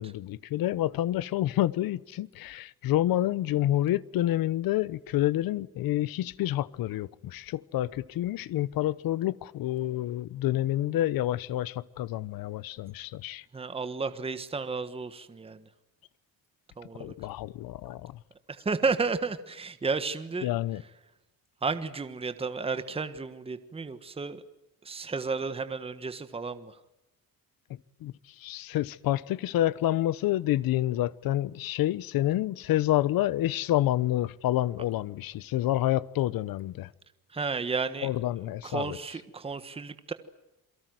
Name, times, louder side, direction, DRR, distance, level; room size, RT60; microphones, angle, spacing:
voice 1, 0.0-13.4 17.0-18.1 20.4-20.8 28.0-28.1 28.4-36.9 38.0-39.0, left 14 dB, 85° left, 1.1 m, -28 dB
voice 2, 13.5-15.7 16.8-17.1 18.5-20.5 21.6-24.4 24.8-26.8 37.3-38.1 38.6-40.1, right 4 dB, 15° right, 1.4 m, -32 dB
28.5 x 23.0 x 7.9 m
cardioid pair, 165°, 34 cm